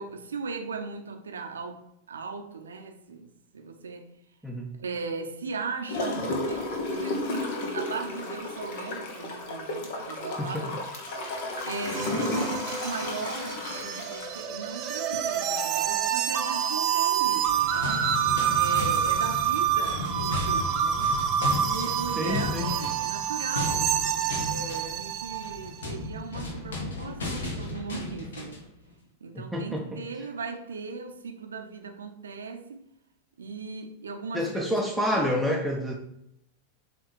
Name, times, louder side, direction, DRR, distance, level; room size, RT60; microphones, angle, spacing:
voice 1, 0.0-4.1 4.8-10.8 11.6-18.1 18.5-21.2 21.7-23.9 24.5-28.6 29.2-32.9 33.4-35.5, right 4 dB, 70° right, 0.8 m, -38 dB
Gurgling / Toilet flush, 5.9-15.3 15.8-15.9, left 2 dB, 50° left, 1.2 m, -33 dB
sound 1, 11.1-25.7, right 9 dB, 40° right, 0.8 m, -28 dB
sound 2, 17.3-28.7, left 3 dB, 65° left, 1.4 m, -35 dB
voice 2, 22.2-22.7 29.3-30.0 34.3-35.9, equal, ahead, 0.8 m, -29 dB
7.7 x 3.3 x 4.7 m
figure-of-eight pair, 90°, 0 cm